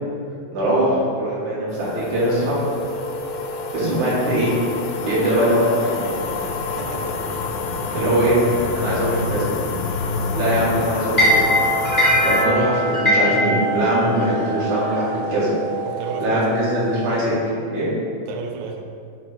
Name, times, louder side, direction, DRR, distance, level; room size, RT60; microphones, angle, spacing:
voice 1, 0.5-2.6 3.7-4.5 5.0-6.1 7.9-8.4 8.7-9.5 10.3-11.5 12.2-15.5 16.2-17.3 17.7-17.9, right 1 dB, 60° right, -8 dB, 3.5 m, -21 dB
sound 1, 1.7-12.5, left 4 dB, 85° left, 2.4 m, -28 dB
sound 2, 1.8-17.2, equal, 60° left, 0.5 m, -25 dB
voice 2, 6.8-7.2 7.9-8.1 8.7-8.8 12.1-12.3 15.9-16.5 18.3-18.8, right 5 dB, 85° right, 3 dB, 1.6 m, -33 dB
10.0 x 4.4 x 4.3 m, 2.4 s
omnidirectional pair, 4.1 m